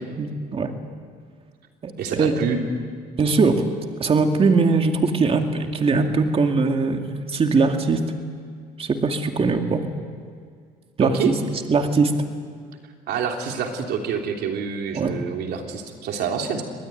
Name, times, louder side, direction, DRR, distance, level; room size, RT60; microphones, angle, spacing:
voice 1, 0.2-0.7 1.8-2.3 3.2-3.6 4.0-8.0 8.8-9.8 11.0-11.3 11.7-12.1 14.9-15.1, right 4 dB, 35° right, 4 dB, 2.3 m, -21 dB
voice 2, 2.0-2.6 11.0-11.3 13.1-16.6, right 6 dB, 75° right, 3 dB, 3.4 m, -27 dB
24.5 x 20.0 x 9.3 m, 2.1 s
cardioid pair, 110°, 17 cm